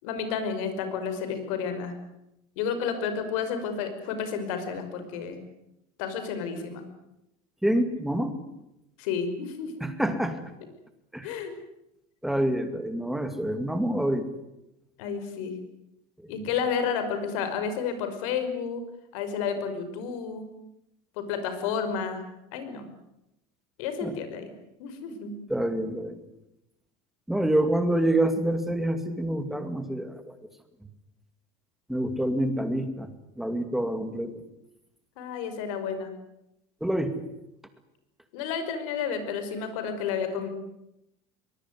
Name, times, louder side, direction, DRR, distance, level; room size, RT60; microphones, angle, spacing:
voice 1, 0.0-1.9 2.6-5.4 6.0-6.8 9.0-9.9 11.2-11.5 15.0-15.5 16.3-18.8 19.1-20.5 21.2-22.2 22.5-22.9 23.8-24.5 24.8-25.3 35.2-36.1 38.3-40.5, left 6 dB, 80° left, 9 dB, 5.6 m, -31 dB
voice 2, 7.6-8.3 9.8-10.4 11.1-11.3 12.2-14.3 16.2-16.3 24.0-24.1 25.5-26.2 27.3-30.4 31.9-34.4 36.8-37.2, right 1 dB, ahead, 8 dB, 2.2 m, -27 dB
23.5 x 20.5 x 9.7 m, 0.86 s
cardioid pair, 165°, 17 cm